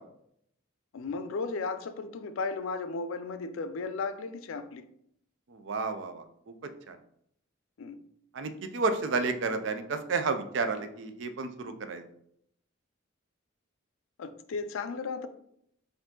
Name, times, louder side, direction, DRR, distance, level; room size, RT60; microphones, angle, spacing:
voice 1, 0.9-4.9 7.8-8.0 14.2-15.3, left 4 dB, 75° left, 0.4 m, -35 dB
voice 2, 5.5-6.5 6.9-7.0 8.3-12.0, right 4 dB, 60° right, 0.4 m, -31 dB
4.8 x 2.6 x 3.7 m
head